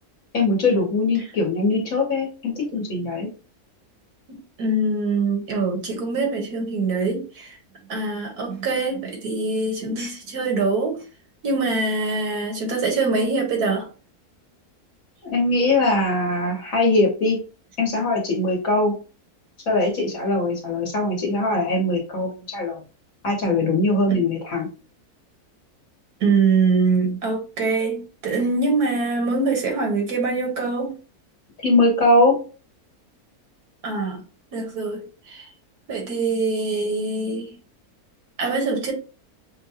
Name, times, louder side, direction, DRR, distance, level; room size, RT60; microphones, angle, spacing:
voice 1, 0.3-3.3 15.2-17.4 17.8-18.9 19.7-22.8 23.2-24.7 31.6-32.4, left 2 dB, 60° left, 1.5 m, -21 dB
voice 2, 4.3-7.6 7.9-11.0 11.4-13.9 24.1-24.2 26.2-31.0 33.8-34.2 34.5-35.5 35.9-37.5 38.4-38.9, right 3 dB, 85° right, 1.8 m, -24 dB
6.1 x 2.2 x 2.8 m
omnidirectional pair, 1.6 m